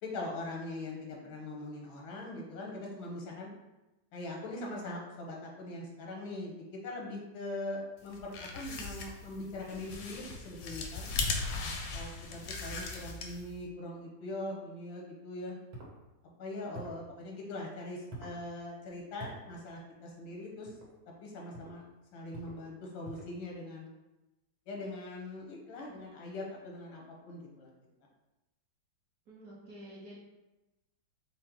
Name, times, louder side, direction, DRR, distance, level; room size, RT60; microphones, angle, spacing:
voice 1, 0.0-3.5 4.1-11.1 11.9-15.6 16.4-20.7 21.2-21.8 22.1-23.9 24.7-27.7, left 2 dB, 85° left, -1 dB, 1.8 m, -41 dB
sound 1, 8.1-13.6, left 4 dB, 70° left, 1.0 m, -38 dB
sound 2, 15.7-16.0 16.7-17.1 18.1-18.4 19.2-19.4 20.7-20.9 21.5-21.8 22.3-22.6 23.0-23.4, right 2 dB, 90° right, 2.0 m, -46 dB
voice 2, 29.3-30.2, right 1 dB, 55° right, -5 dB, 1.1 m, -50 dB
5.1 x 2.1 x 4.4 m, 1.0 s
omnidirectional pair, 2.2 m